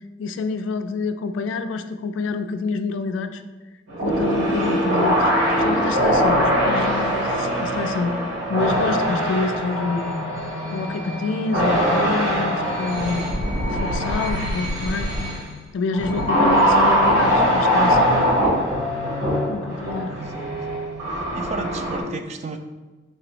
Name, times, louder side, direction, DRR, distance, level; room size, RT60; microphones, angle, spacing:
voice 1, 0.2-3.4 4.0-5.3 5.6-8.2 8.5-10.2 10.7-13.3 13.6-15.2 15.7-18.0 19.5-20.1, left 4 dB, 75° left, 9 dB, 0.3 m, -27 dB
sound 1, 3.9-15.4 15.9-22.0, equal, 70° right, 1.3 m, -22 dB
voice 2, 20.1-20.5 21.3-22.6, right 3 dB, 35° right, 6 dB, 0.3 m, -32 dB
4.2 x 2.9 x 3.1 m, 1.2 s
head